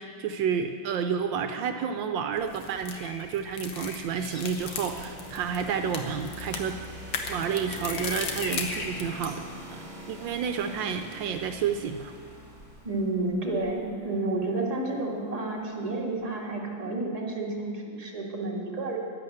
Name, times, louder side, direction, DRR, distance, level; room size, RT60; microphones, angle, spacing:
voice 1, 0.0-6.8 7.3-9.4 9.7-9.8 10.1-12.1, right 7 dB, 80° right, 7 dB, 1.4 m, -30 dB
sound 1, 2.4-9.4, left 5 dB, 80° left, 1.9 m, -38 dB
Bird vocalization bird call bird song, 2.6-14.4 16.2-16.4, left 2 dB, 40° left, 1.7 m, -45 dB
sound 2, 3.4-13.1, equal, 35° right, 2.5 m, -44 dB
voice 2, 12.8-19.0, right 2 dB, 20° right, -3 dB, 2.1 m, -30 dB
11.0 x 11.0 x 7.8 m, 2.1 s
omnidirectional pair, 2.1 m